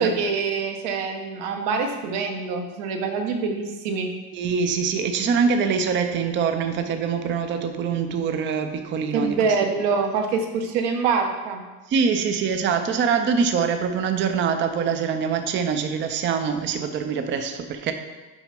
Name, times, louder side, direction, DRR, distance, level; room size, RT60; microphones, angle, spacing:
voice 1, 0.0-4.1 9.1-11.6, right 5 dB, 70° right, 4 dB, 1.1 m, -25 dB
voice 2, 4.3-9.4 11.9-17.9, right 6 dB, 30° right, 7 dB, 0.5 m, -24 dB
6.1 x 4.3 x 5.1 m, 1.2 s
cardioid pair, 150°, 43 cm